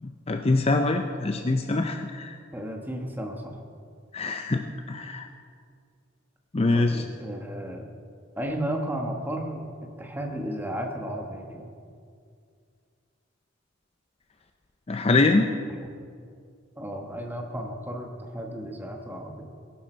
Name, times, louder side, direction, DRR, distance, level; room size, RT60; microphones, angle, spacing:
voice 1, 0.0-2.4 4.1-5.3 6.5-7.1 14.9-15.5, left 2 dB, 30° left, 6 dB, 0.5 m, -24 dB
voice 2, 2.5-3.6 6.7-7.9 8.4-9.7 10.0-11.7 16.8-19.5, right 1 dB, 10° right, 2 dB, 1.3 m, -33 dB
18.5 x 11.5 x 4.4 m, 2.2 s
head